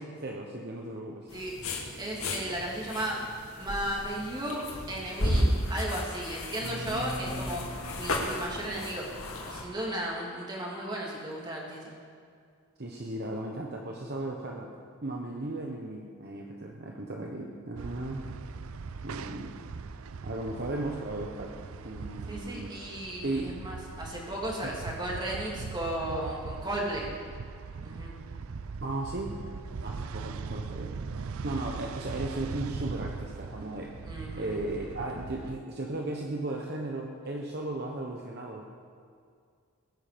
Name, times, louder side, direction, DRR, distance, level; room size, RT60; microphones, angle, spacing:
voice 1, 0.0-1.3 6.6-8.2 12.8-14.7 15.0-18.2 19.0-19.6 20.2-21.5 21.8-22.9 23.2-23.5 24.6-24.7 28.8-29.3 29.8-30.9 31.4-34.1 34.4-38.6, right 2 dB, 50° right, 0 dB, 1.1 m, -36 dB
sound 1, 1.3-9.6, left 1 dB, 90° left, 2.0 m, -33 dB
voice 2, 2.0-3.2 3.6-9.0 9.5-11.9 16.8-17.0 22.3-27.1 27.8-28.1 34.0-34.6, right 1 dB, 20° right, -3 dB, 2.9 m, -35 dB
sound 2, 17.8-35.6, right 5 dB, 80° right, 0.5 m, -40 dB
20.5 x 9.6 x 5.2 m, 2.2 s
head